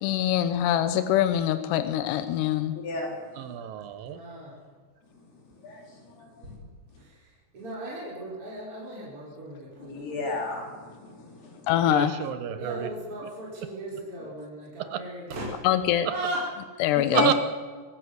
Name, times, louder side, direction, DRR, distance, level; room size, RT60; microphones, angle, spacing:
voice 1, 0.0-2.7 11.7-12.1 15.6-16.1 16.8-17.3, left 11 dB, 90° left, 10 dB, 3.0 m, -24 dB
voice 2, 2.7-3.1 5.6-6.5 9.9-11.7 17.0-17.3, left 3 dB, 75° left, 0 dB, 5.6 m, -32 dB
voice 3, 3.4-4.2 11.9-12.9 14.9-15.0 17.1-17.3, right 10 dB, 70° right, 11 dB, 2.5 m, -29 dB
voice 4, 4.0-4.6 6.4-6.7 7.0-10.1 12.6-15.7 16.1-16.5, right 1 dB, 35° right, -5 dB, 5.4 m, -37 dB
24.5 x 15.0 x 7.9 m, 1.5 s
omnidirectional pair, 4.7 m